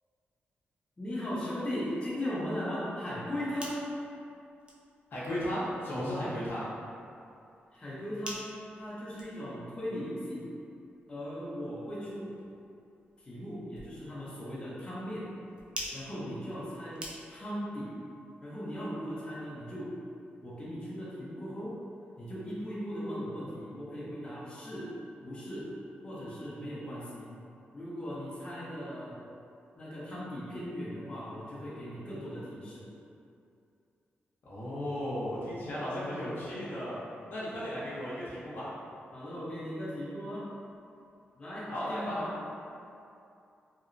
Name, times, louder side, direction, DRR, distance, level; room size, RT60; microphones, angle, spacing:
voice 1, 1.0-3.8 7.7-10.5 11.1-12.4 13.2-15.3 15.9-17.9 18.4-20.0 20.4-21.8 22.2-24.9 25.2-25.7 26.0-27.3 27.7-29.2 29.8-32.9 39.1-40.5 41.4-42.4, equal, 25° left, -9 dB, 0.6 m, -38 dB
sound 1, 3.4-17.6, equal, 25° right, 0.4 m, -49 dB
voice 2, 5.1-6.7 34.4-37.0 37.3-38.7 41.7-42.2, equal, 65° left, -9 dB, 0.7 m, -35 dB
2.8 x 2.0 x 2.5 m, 2.5 s
cardioid pair, 110°, 4 cm